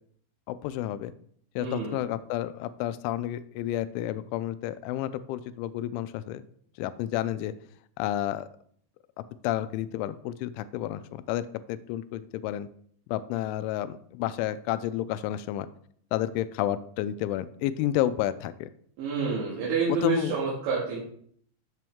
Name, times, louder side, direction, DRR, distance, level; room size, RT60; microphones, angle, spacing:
voice 1, 0.5-1.1 1.6-6.4 6.8-7.5 8.0-8.5 9.2-12.7 13.1-15.7 16.1-18.7 19.9-20.4, left 13 dB, 90° left, 14 dB, 3.0 m, -30 dB
voice 2, 1.6-2.0 19.0-21.0, right 5 dB, 75° right, -6 dB, 4.3 m, -28 dB
10.5 x 7.7 x 3.6 m, 0.63 s
omnidirectional pair, 5.3 m